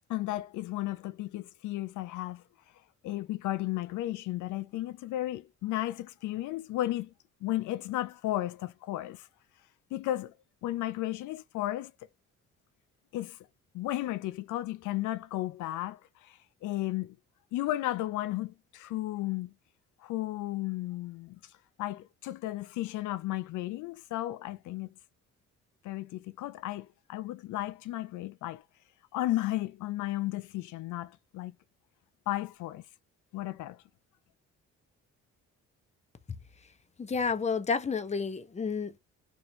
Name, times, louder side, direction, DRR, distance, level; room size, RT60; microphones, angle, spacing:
voice 1, 0.1-2.4 3.0-7.1 7.4-9.3 9.9-10.3 10.6-11.9 13.1-13.4 13.7-17.2 17.5-19.5 20.0-21.4 21.8-24.9 25.8-28.6 29.1-31.5 32.3-32.8 33.3-33.8, left 15 dB, 80° left, 0.5 m, -34 dB
voice 2, 37.0-39.0, left 5 dB, 20° left, 0.7 m, -30 dB
2.8 x 2.5 x 4.2 m
cardioid pair, 90°, 30 cm